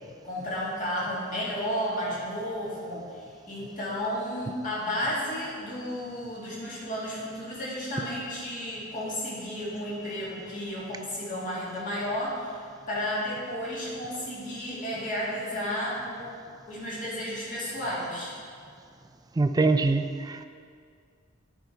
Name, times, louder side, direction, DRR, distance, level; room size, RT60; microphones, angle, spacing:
voice 1, 0.2-16.4 16.7-18.3, equal, 40° left, -6 dB, 2.2 m, -33 dB
voice 2, 19.4-20.4, right 3 dB, 20° right, 9 dB, 0.3 m, -24 dB
9.4 x 5.5 x 4.5 m, 2.2 s
head